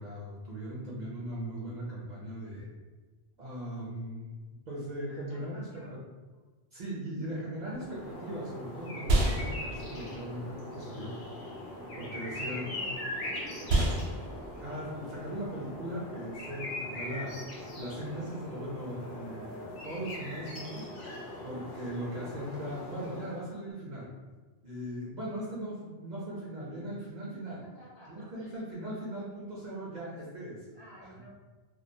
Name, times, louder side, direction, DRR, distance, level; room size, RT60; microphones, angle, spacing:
voice 1, 0.0-2.7 3.4-4.3 4.7-5.7 6.7-11.1 11.8-12.7 14.6-17.4 17.8-20.9 21.4-24.1 24.6-27.6 28.1-30.7, right 1 dB, 55° right, -6 dB, 0.6 m, -39 dB
voice 2, 5.3-6.0 12.4-14.3 26.9-28.7 30.7-31.3, right 1 dB, 30° left, -10 dB, 0.7 m, -52 dB
sound 1, 7.6-23.5, left 1 dB, 85° left, 0.9 m, -41 dB
sound 2, 7.7-17.3, right 1 dB, 85° right, 0.8 m, -33 dB
2.3 x 2.2 x 2.6 m, 1.3 s
omnidirectional pair, 1.0 m